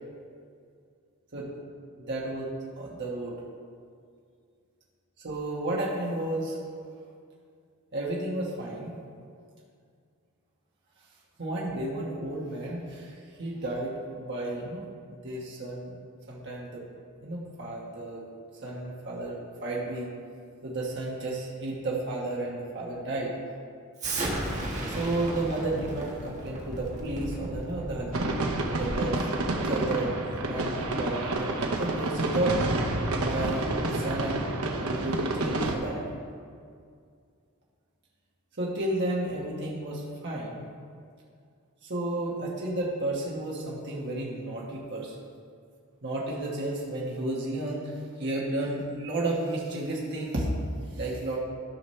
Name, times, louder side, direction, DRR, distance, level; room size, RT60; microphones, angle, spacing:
voice 1, 1.9-3.3 5.2-6.6 7.9-8.9 11.4-14.8 15.1-15.9 16.3-16.8 17.2-18.2 18.6-20.1 20.6-23.4 24.9-28.4 28.7-29.3 29.6-32.6 33.1-36.0 38.6-40.7 41.8-45.2 46.0-50.5 50.9-51.4, right 2 dB, 55° right, -4 dB, 1.4 m, -32 dB
Explosion, 24.0-29.1, right 1 dB, 35° right, 1.6 m, -34 dB
sound 1, 28.1-35.8, right 2 dB, 75° right, 0.9 m, -29 dB
13.0 x 6.0 x 3.3 m, 2.2 s
head